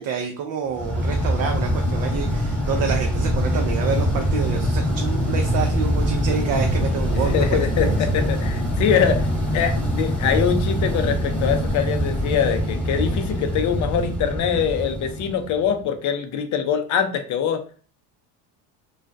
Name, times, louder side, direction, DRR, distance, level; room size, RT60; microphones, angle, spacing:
voice 1, 0.0-7.6 7.9-8.0, right 6 dB, 45° right, 4 dB, 0.4 m, -28 dB
sound 1, 0.7-15.8, equal, 5° left, 0.9 m, -23 dB
voice 2, 7.3-9.3 9.5-17.6, left 7 dB, 40° left, 7 dB, 0.5 m, -23 dB
2.4 x 2.1 x 2.5 m, 0.41 s
hypercardioid pair, 80°, 48 cm